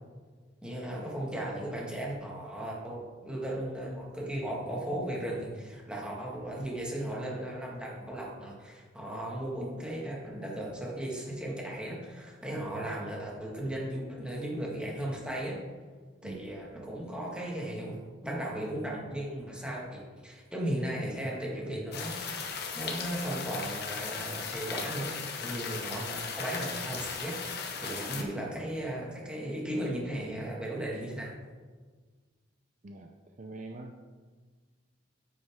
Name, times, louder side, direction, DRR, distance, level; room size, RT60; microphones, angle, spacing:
voice 1, 0.6-15.6 16.2-22.1 22.7-31.3, right 1 dB, 5° right, -3 dB, 1.7 m, -36 dB
sound 1, 21.9-28.2, left 5 dB, 55° left, 1.1 m, -37 dB
voice 2, 32.8-33.9, right 2 dB, 40° right, 3 dB, 0.5 m, -44 dB
9.5 x 8.4 x 3.6 m, 1.5 s
head